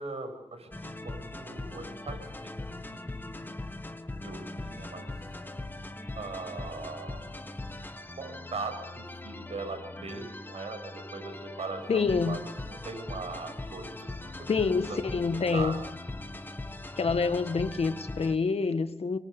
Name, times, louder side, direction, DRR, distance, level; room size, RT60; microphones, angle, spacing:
voice 1, 0.0-2.6 2.9-3.5 4.2-5.1 6.2-7.4 8.2-15.0 15.3-15.8, right 3 dB, 70° right, 7.1 m, -40 dB
sound 1, 0.7-18.3, left 2 dB, 20° left, 1.7 m, -40 dB
voice 2, 11.9-12.4 14.5-15.8 17.0-19.2, left 4 dB, 70° left, 1.7 m, -27 dB
29.0 x 24.0 x 7.0 m
wide cardioid pair, 90°, 11 cm